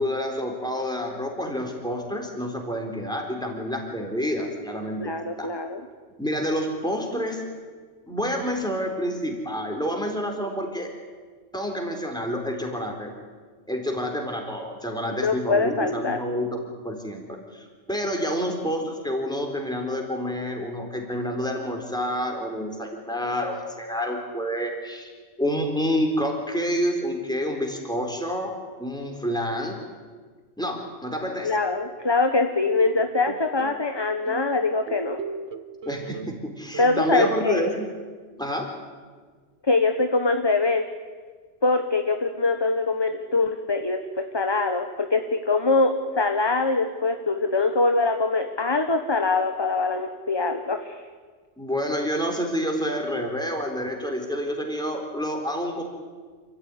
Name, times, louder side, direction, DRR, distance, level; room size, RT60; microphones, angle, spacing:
voice 1, 0.0-5.5 6.2-7.4 8.1-10.9 11.5-13.1 13.7-16.6 16.8-25.1 25.4-28.5 28.8-29.8 30.6-31.5 35.9-37.8 38.4-38.7 51.6-55.8, equal, 5° left, 2 dB, 4.1 m, -28 dB
voice 2, 5.0-5.8 15.1-16.2 31.4-35.2 36.8-37.7 39.6-40.8 41.6-51.0, left 3 dB, 20° left, 6 dB, 1.2 m, -23 dB
sound 1, 33.0-33.8 34.2-36.5 36.7-37.3, right 5 dB, 85° right, 1.4 m, -37 dB
28.0 x 14.5 x 9.9 m, 1.5 s
omnidirectional pair, 1.2 m